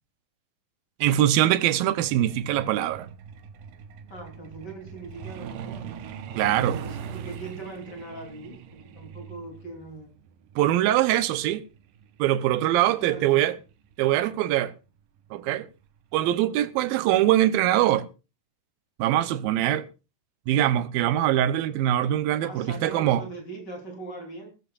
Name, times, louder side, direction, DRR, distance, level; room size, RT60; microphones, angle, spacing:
voice 1, 1.0-3.1 6.4-6.8 10.6-11.6 12.2-13.6 14.0-14.7 15.3-15.7 16.1-18.1 19.0-19.9 20.5-23.2, right 13 dB, 90° right, 2.7 m, -23 dB
Truck, 2.0-14.3 15.5-15.7 16.1-16.3 16.7-16.9 17.3-17.4 17.8-17.9, right 8 dB, 75° right, 2.7 m, -41 dB
voice 2, 4.1-6.0 6.3-10.1 12.6-13.5 22.4-24.5, right 2 dB, 30° left, 4.1 m, -41 dB
19.5 x 14.5 x 2.5 m
omnidirectional pair, 4.1 m